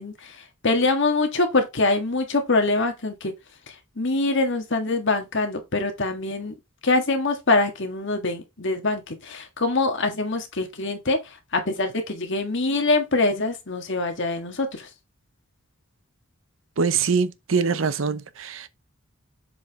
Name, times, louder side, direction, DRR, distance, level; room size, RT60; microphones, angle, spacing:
voice 1, 0.0-3.3 3.7-6.6 6.8-14.9, left 2 dB, 60° left, 1.7 m, -24 dB
voice 2, 16.8-18.7, right 5 dB, 70° right, 0.7 m, -23 dB
7.3 x 4.8 x 3.6 m
head